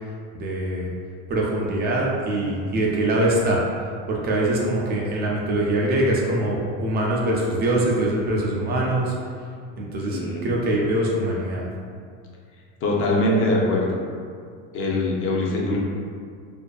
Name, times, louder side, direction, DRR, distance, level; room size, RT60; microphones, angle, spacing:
voice 1, 0.3-0.9 1.3-9.1 9.8-11.7, right 1 dB, 35° right, -3 dB, 0.4 m, -23 dB
voice 2, 10.1-10.5 12.8-14.0 14.7-15.8, left 1 dB, 45° left, -3 dB, 0.5 m, -22 dB
2.5 x 2.2 x 2.2 m, 2.2 s
supercardioid pair, 120°, 30 cm